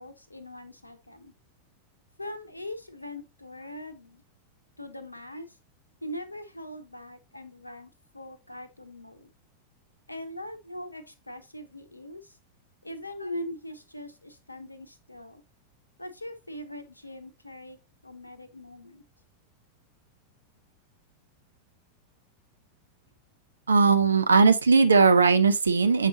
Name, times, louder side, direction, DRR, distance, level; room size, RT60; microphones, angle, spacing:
voice 1, 0.0-1.3 2.2-4.2 4.8-5.6 6.0-9.3 10.1-12.4 12.8-15.4 16.0-17.8 18.0-19.0, left 1 dB, 85° left, 0.8 m, -41 dB
voice 2, 23.7-26.1, right 4 dB, 75° right, 0.6 m, -19 dB
7.4 x 5.3 x 2.7 m
figure-of-eight pair, 90°, 0 cm